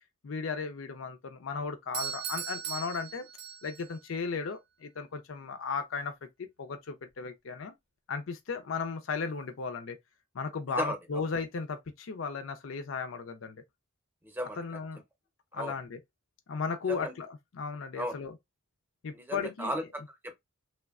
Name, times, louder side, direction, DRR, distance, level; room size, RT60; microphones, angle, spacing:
voice 1, 0.2-3.3 3.6-6.1 6.4-7.7 8.1-10.0 10.3-13.6 14.6-15.0 15.5-16.0 16.5-18.4 19.0-19.8, left 5 dB, 70° left, 0.5 m, -35 dB
Doorbell, 1.9-3.9, right 7 dB, 55° right, 0.6 m, -38 dB
voice 2, 14.2-14.6 15.5-15.7 16.9-17.1 17.9-18.1 19.1-20.3, right 1 dB, 10° right, 0.7 m, -35 dB
3.2 x 2.1 x 2.3 m
head